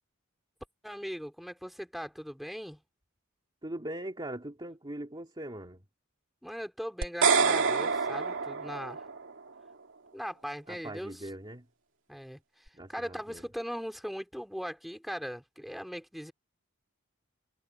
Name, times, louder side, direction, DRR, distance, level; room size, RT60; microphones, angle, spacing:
voice 1, 0.8-2.8 6.4-9.1 10.1-11.3 12.1-16.3, equal, ahead, 4.1 m, -39 dB
voice 2, 3.6-5.8 10.7-11.7 12.7-13.4, right 1 dB, 25° right, 2.2 m, -41 dB
sound 1, 7.0-9.3, right 5 dB, 65° right, 2.6 m, -27 dB
head